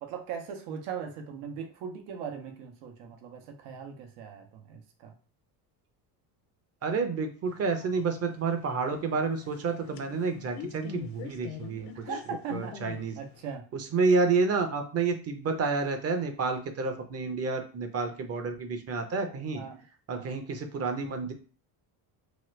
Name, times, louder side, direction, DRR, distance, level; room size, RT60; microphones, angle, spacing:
voice 1, 0.0-5.1 12.0-12.8 13.2-13.7 19.5-19.8 20.1-20.3, right 7 dB, 85° right, 4 dB, 0.8 m, -39 dB
voice 2, 6.8-11.9 12.5-13.1 13.7-19.6 20.1-21.3, right 4 dB, 35° right, 7 dB, 0.6 m, -29 dB
sound 1, 7.5-13.5, left 9 dB, 60° left, 0.6 m, -45 dB
2.9 x 2.3 x 3.2 m, 0.37 s
supercardioid pair, 100°, 44 cm